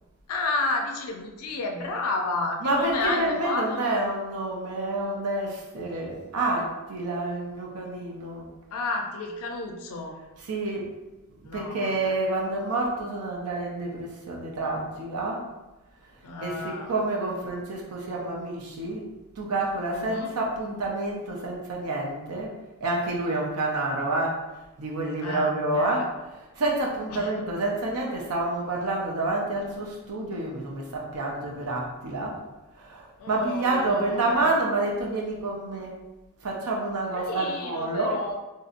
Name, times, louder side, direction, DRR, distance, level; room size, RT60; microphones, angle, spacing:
voice 1, 0.3-3.9 8.7-10.2 11.4-12.2 16.2-16.9 19.9-20.3 25.2-26.0 27.1-27.5 33.2-34.4 37.1-38.4, left 3 dB, 80° left, 2 dB, 0.4 m, -31 dB
voice 2, 2.6-8.5 10.4-10.9 11.4-15.5 16.4-19.1 19.4-22.6 22.8-24.4 24.8-32.4 32.8-36.0 36.4-38.1, right 2 dB, 90° right, -1 dB, 0.6 m, -28 dB
4.0 x 2.6 x 2.5 m, 1.1 s
head